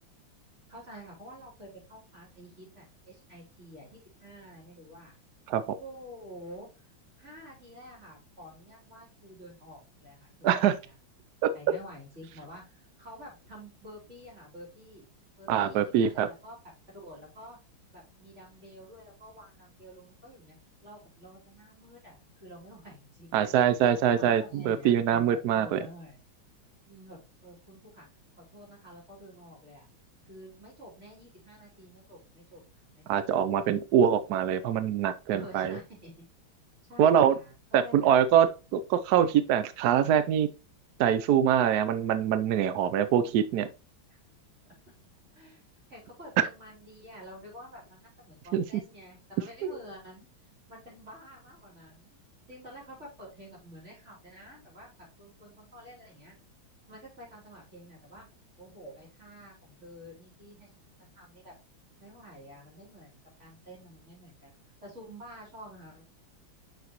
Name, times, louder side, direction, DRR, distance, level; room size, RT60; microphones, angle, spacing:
voice 1, 0.7-5.1 5.8-6.7 7.2-10.9 11.5-15.1 15.4-16.5 16.9-17.6 17.9-20.6 20.8-23.5 24.2-26.2 26.8-28.1 28.4-29.9 30.2-33.2 35.3-36.3 36.9-38.6 44.1-44.2 45.3-45.6 45.9-50.3 50.7-52.2 52.5-56.4 56.9-58.3 58.6-60.7 61.0-61.5 62.0-64.6 64.8-66.0, equal, 35° right, 5.0 m, -49 dB
voice 2, 10.4-10.8 11.4-11.5 15.5-16.3 23.3-25.8 33.1-35.8 37.0-37.4 37.7-40.5 41.0-43.7 48.5-48.6, right 9 dB, 80° right, 0.8 m, -24 dB
6.9 x 6.1 x 2.9 m
omnidirectional pair, 2.2 m